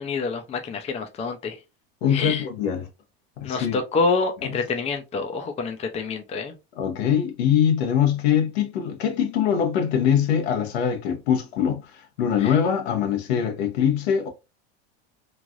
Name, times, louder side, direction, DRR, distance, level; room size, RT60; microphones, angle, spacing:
voice 1, 0.0-1.6 2.1-2.4 3.4-6.5 12.4-12.5, left 4 dB, 20° left, 0.5 m, -27 dB
voice 2, 2.0-2.9 3.4-3.8 6.8-14.3, left 8 dB, 85° left, 1.0 m, -23 dB
3.2 x 2.5 x 2.4 m
supercardioid pair, 115°, 31 cm